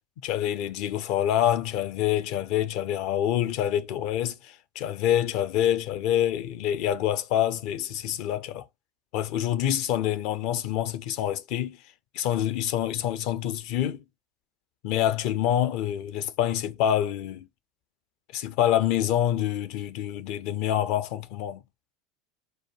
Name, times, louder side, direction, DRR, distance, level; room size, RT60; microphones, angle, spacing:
voice 1, 0.2-8.6 9.1-11.8 12.1-14.0 14.8-17.4 18.3-21.6, left 11 dB, 55° left, 0.7 m, -26 dB
4.3 x 2.3 x 4.6 m
figure-of-eight pair, 75°, 0 cm